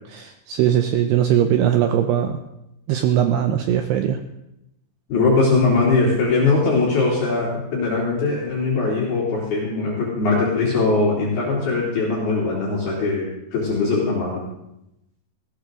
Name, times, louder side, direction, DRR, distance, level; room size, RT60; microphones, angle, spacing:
voice 1, 0.1-2.4 2.9-4.2, right 10 dB, 90° right, 6 dB, 2.3 m, -20 dB
voice 2, 5.1-14.4, left 3 dB, 55° left, -5 dB, 5.0 m, -21 dB
19.5 x 17.5 x 3.8 m, 0.85 s
omnidirectional pair, 5.8 m